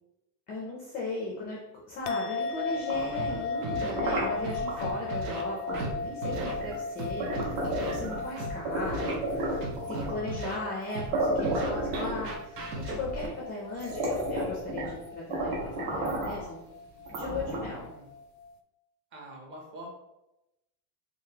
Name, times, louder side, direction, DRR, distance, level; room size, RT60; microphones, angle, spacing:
voice 1, 0.5-1.6 1.9-9.6 9.9-12.6 13.0-16.6 17.1-17.9, left 2 dB, 25° left, -3 dB, 0.3 m, -37 dB
sound 1, 2.1-18.6, left 4 dB, 75° left, 0.5 m, -37 dB
sound 2, 2.7-4.8 5.7-5.9 6.2-8.3 8.7-10.3 10.8-10.9 11.1-12.6 13.3-13.4 13.7-15.0 15.3-16.5 17.1-17.9, right 1 dB, 70° right, 1.5 m, -32 dB
Scratching (performance technique), 3.1-3.3 3.6-3.9 4.4-5.4 5.7-5.9 6.2-6.5 7.0-7.9 8.4-8.5 8.9-9.1 9.6-10.6 10.9-11.1 11.4-13.3, right 2 dB, 85° right, 0.9 m, -36 dB
voice 2, 3.3-3.9 17.8-18.1 19.1-19.9, equal, 25° right, 1 dB, 0.6 m, -45 dB
3.8 x 3.1 x 2.8 m, 0.92 s
supercardioid pair, 155°, 46 cm